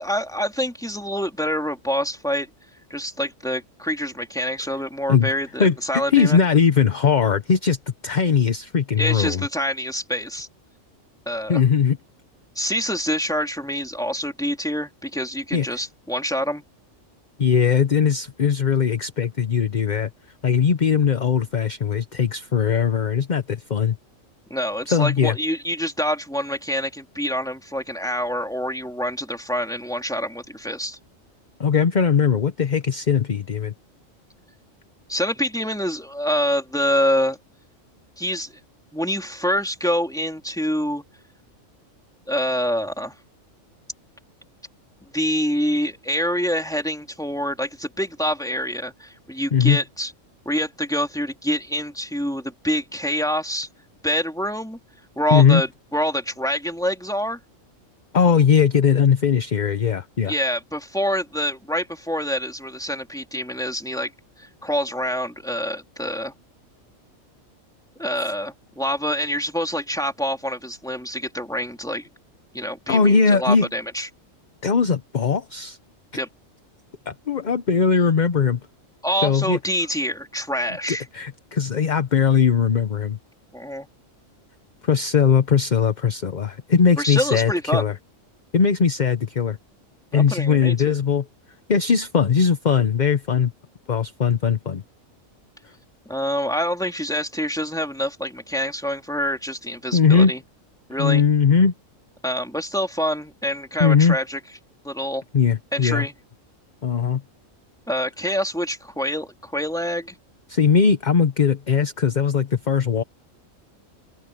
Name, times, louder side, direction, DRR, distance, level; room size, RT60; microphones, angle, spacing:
voice 1, 0.0-2.5 2.9-6.4 9.0-10.5 11.2-11.6 12.5-16.6 24.5-31.0 35.1-37.4 38.2-38.5 38.9-41.0 42.3-43.1 45.1-50.1 50.4-53.7 54.0-54.8 55.2-57.4 60.3-64.1 64.4-66.3 68.0-72.1 72.5-74.1 76.1-76.3 79.0-81.0 83.5-83.9 87.0-87.8 90.1-90.9 96.0-100.4 100.9-101.2 102.2-104.4 104.8-105.2 105.7-106.1 107.9-110.2, equal, 5° left, 3.4 m, -26 dB
voice 2, 6.1-7.8 8.0-9.4 11.5-12.0 15.5-15.6 17.4-20.1 20.4-24.0 24.9-25.4 31.6-33.7 49.5-49.8 55.3-55.6 58.1-60.3 72.9-73.7 74.6-75.8 77.1-78.6 79.2-79.6 80.9-83.2 84.8-87.9 88.5-89.6 90.1-91.2 91.7-93.5 93.9-94.8 99.9-100.3 101.0-101.7 103.8-104.2 105.3-106.1 106.8-107.2 110.5-113.0, left 6 dB, 40° left, 0.9 m, -19 dB
open air
omnidirectional pair, 1.4 m